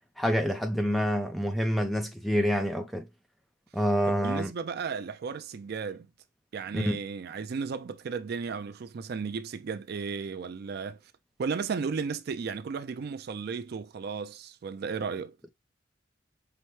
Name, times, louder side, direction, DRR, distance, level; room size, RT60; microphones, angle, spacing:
voice 1, 0.2-3.1 3.7-4.5 6.7-7.0, equal, ahead, 0.5 m, -27 dB
voice 2, 4.1-6.1 6.5-11.0 11.4-15.4, right 5 dB, 55° right, 0.4 m, -34 dB
5.7 x 2.1 x 3.1 m
head